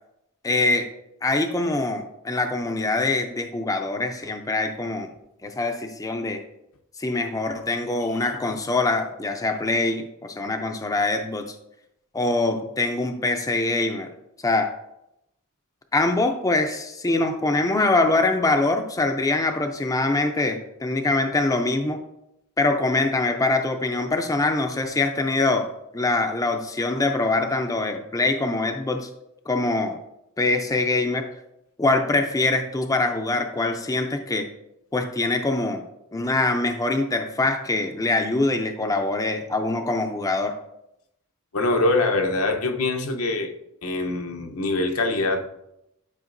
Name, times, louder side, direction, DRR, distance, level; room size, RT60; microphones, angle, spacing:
voice 1, 0.4-0.9 1.2-5.1 5.4-6.4 7.0-11.6 12.1-14.1 14.4-14.7 15.9-22.0 22.6-25.7 25.9-29.1 29.5-30.0 30.4-31.3 31.8-34.5 34.9-35.8 36.1-40.6, left 2 dB, 15° left, 0.5 m, -24 dB
voice 2, 41.5-43.5 43.8-45.5, left 2 dB, 80° left, 0.9 m, -23 dB
10.5 x 4.9 x 2.6 m
head